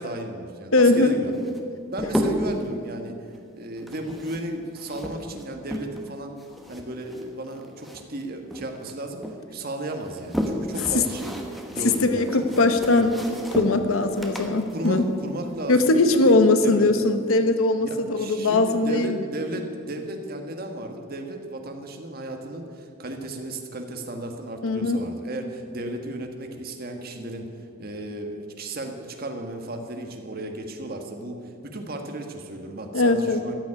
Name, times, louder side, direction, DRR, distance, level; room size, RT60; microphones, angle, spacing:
voice 1, 0.0-1.5 1.9-6.3 6.7-9.2 9.5-11.4 11.7-13.1 14.7-16.9 17.8-33.5, right 1 dB, 45° right, 4 dB, 1.4 m, -34 dB
voice 2, 0.7-1.2 10.9-11.0 11.8-15.0 15.7-19.2 24.6-25.1 32.9-33.4, left 2 dB, 85° left, 9 dB, 1.0 m, -20 dB
sound 1, 1.3-2.6 3.8-6.1 6.4-8.2 8.5-9.4 9.9-16.0, equal, ahead, 1.2 m, -32 dB
13.5 x 7.1 x 9.8 m, 2.3 s
head